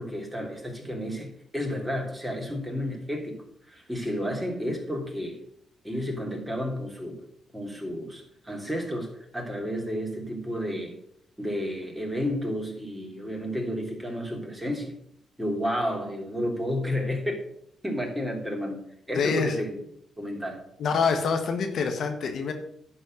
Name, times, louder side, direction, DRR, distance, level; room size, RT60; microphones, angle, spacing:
voice 1, 0.0-5.4 5.8-7.2 7.5-11.0 11.4-15.0 15.4-17.3 17.8-18.8 19.1-19.8 20.2-20.6, equal, 5° right, 1 dB, 3.1 m, -31 dB
voice 2, 19.1-19.6 20.8-22.5, left 5 dB, 65° left, 5 dB, 1.4 m, -26 dB
11.0 x 4.3 x 7.6 m, 0.71 s
supercardioid pair, 60°, 0 cm